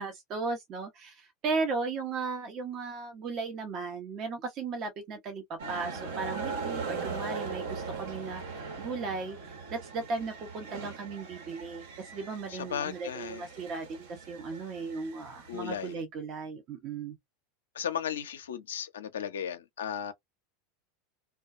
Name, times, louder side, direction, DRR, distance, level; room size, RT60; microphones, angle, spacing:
voice 1, 0.0-17.2, right 4 dB, 45° right, 0.8 m, -36 dB
sound 1, 5.6-15.9, right 4 dB, 75° right, 1.2 m, -40 dB
voice 2, 12.5-13.4 15.5-16.0 17.7-20.1, left 8 dB, 85° left, 0.5 m, -35 dB
2.3 x 2.2 x 2.5 m
hypercardioid pair, 95°, 0 cm